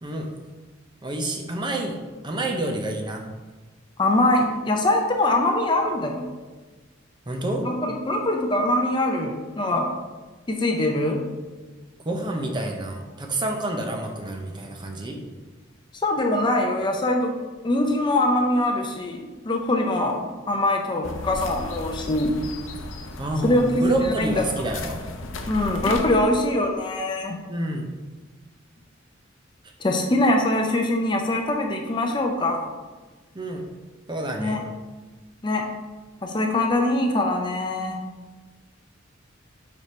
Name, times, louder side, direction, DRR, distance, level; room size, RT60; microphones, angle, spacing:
voice 1, 1.0-2.0 2.2-3.2 7.3-7.7 12.1-15.2 23.2-25.0 27.5-27.9 33.3-33.6 34.1-34.7, right 1 dB, 25° right, 2 dB, 0.6 m, -28 dB
voice 2, 4.0-6.3 7.6-9.9 10.5-11.2 16.0-17.3 17.6-22.4 23.4-24.4 25.5-27.4 29.8-32.7 34.4-34.6 35.4-35.7 36.2-38.0, left 1 dB, 25° left, 2 dB, 0.5 m, -23 dB
sound 1, 21.0-26.2, left 2 dB, 85° left, 0.6 m, -35 dB
5.2 x 4.8 x 4.2 m, 1.3 s
head